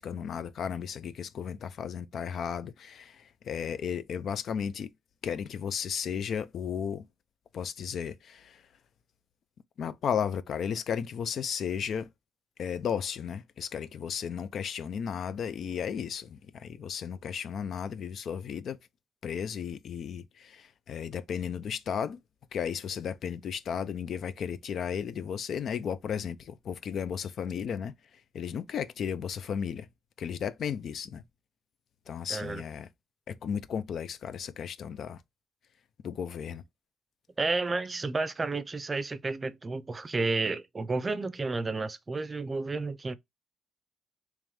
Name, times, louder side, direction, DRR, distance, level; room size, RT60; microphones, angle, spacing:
voice 1, 0.0-3.2 3.5-4.9 5.2-7.1 7.5-8.6 9.8-12.1 12.6-18.8 19.2-22.2 22.5-27.9 28.3-29.9 30.2-31.2 32.1-32.9 33.3-35.2 36.0-36.6, left 7 dB, 60° left, 0.4 m, -34 dB
voice 2, 32.3-32.6 37.4-43.1, right 3 dB, 30° right, 0.5 m, -31 dB
3.5 x 3.1 x 3.1 m
cardioid pair, 90°, 0 cm